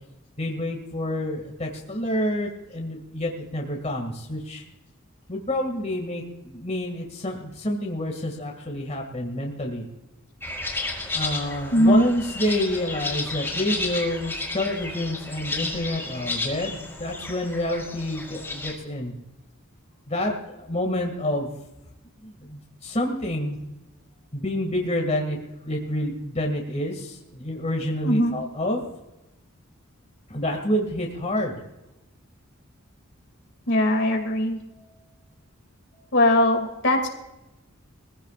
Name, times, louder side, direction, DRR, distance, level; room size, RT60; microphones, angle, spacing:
voice 1, 0.4-4.6 5.3-9.8 11.1-19.1 20.1-21.5 22.2-23.6 24.3-25.4 25.6-28.9 30.3-31.6, left 1 dB, 30° left, 1 dB, 2.3 m, -28 dB
sound 1, 10.4-18.7, left 3 dB, 10° left, 4.6 m, -32 dB
voice 2, 11.7-12.1 28.0-28.3 33.7-34.6 36.1-37.1, left 1 dB, 55° left, 4 dB, 2.6 m, -20 dB
23.0 x 16.0 x 2.5 m, 0.95 s
head